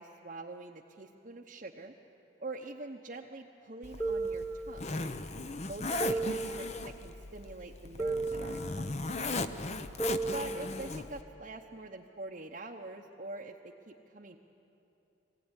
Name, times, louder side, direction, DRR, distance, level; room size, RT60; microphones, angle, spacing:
voice 1, 0.0-1.9 2.4-4.9 5.7-9.0 10.3-14.4, right 2 dB, 40° right, -1 dB, 0.8 m, -45 dB
Zipper (clothing), 3.8-11.2, left 2 dB, 35° left, 0.7 m, -38 dB
sound 1, 4.0-5.2 6.0-7.2 8.0-9.2 10.0-11.2, right 3 dB, 15° left, 1.5 m, -36 dB
22.0 x 16.0 x 9.8 m, 2.9 s
head